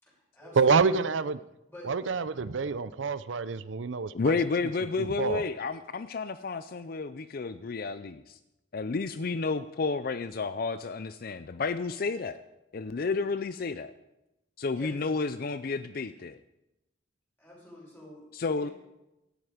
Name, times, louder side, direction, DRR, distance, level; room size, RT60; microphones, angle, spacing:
voice 1, 0.0-1.0 1.7-1.9 14.7-15.0 17.4-18.7, equal, 10° left, 6.2 m, -48 dB
voice 2, 0.6-1.4 1.9-4.4 5.0-5.4, right 5 dB, 90° right, 0.6 m, -27 dB
voice 3, 4.1-8.4 8.7-12.4 12.7-13.9 14.6-16.4 18.3-18.7, left 4 dB, 50° left, 0.5 m, -31 dB
16.5 x 12.0 x 5.0 m
head